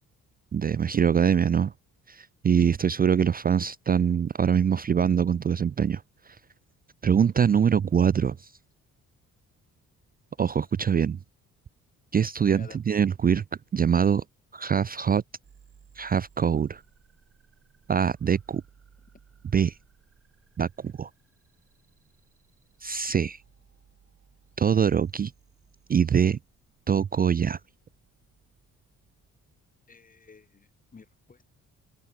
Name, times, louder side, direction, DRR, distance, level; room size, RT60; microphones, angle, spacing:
voice 1, 0.5-1.7 2.1-6.0 7.0-8.5 10.4-11.2 12.1-13.4 13.7-14.2 14.5-15.2 16.0-16.8 17.9-18.6 19.5-19.8 20.6-21.1 22.8-23.4 24.6-25.3 25.9-26.4 26.9-27.6, right 7 dB, 30° right, 0.5 m, -23 dB
voice 2, 12.5-13.0 29.9-31.5, left 4 dB, 25° left, 1.7 m, -52 dB
sound 1, 15.4-29.5, right 7 dB, 50° right, 4.9 m, -61 dB
open air
cardioid pair, 90°, 30 cm